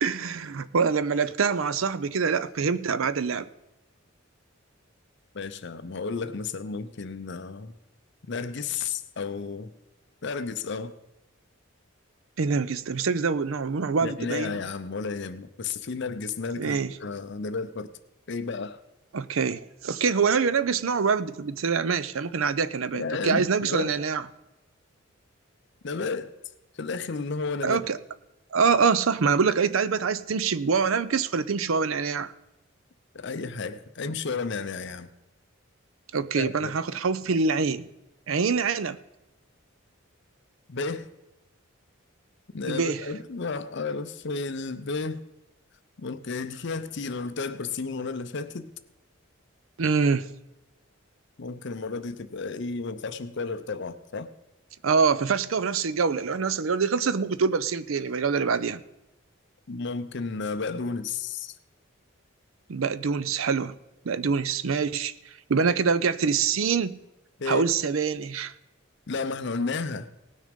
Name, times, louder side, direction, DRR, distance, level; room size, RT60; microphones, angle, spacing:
voice 1, 0.0-3.5 12.4-14.6 16.6-16.9 19.1-24.2 27.6-28.0 28.5-32.3 36.1-37.8 38.3-39.0 42.7-43.1 49.8-50.3 54.8-58.8 62.7-63.7 64.0-65.1 65.5-67.0 67.5-68.5, right 5 dB, 75° right, 15 dB, 0.6 m, -25 dB
voice 2, 5.3-7.7 8.3-9.7 10.2-10.9 14.0-17.9 18.3-18.8 22.9-23.9 25.8-26.3 26.7-27.9 33.1-35.1 36.3-36.7 40.7-41.1 42.5-45.2 46.0-48.7 51.4-54.3 59.7-61.5 67.4-67.6 69.1-70.1, left 4 dB, 55° left, 11 dB, 0.6 m, -32 dB
18.0 x 6.4 x 5.1 m, 0.95 s
head